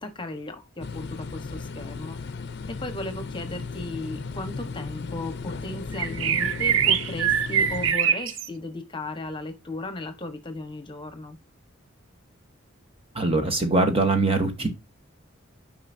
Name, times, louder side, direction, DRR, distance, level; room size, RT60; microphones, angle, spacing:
voice 1, 0.0-2.3 2.8-11.4, left 2 dB, 25° left, 1.2 m, -36 dB
sound 1, 0.8-7.9, left 4 dB, 55° left, 0.6 m, -35 dB
sound 2, 5.9-8.5, right 8 dB, 70° right, 0.6 m, -23 dB
voice 2, 13.1-14.7, right 2 dB, 25° right, 1.1 m, -22 dB
9.6 x 5.3 x 2.6 m
head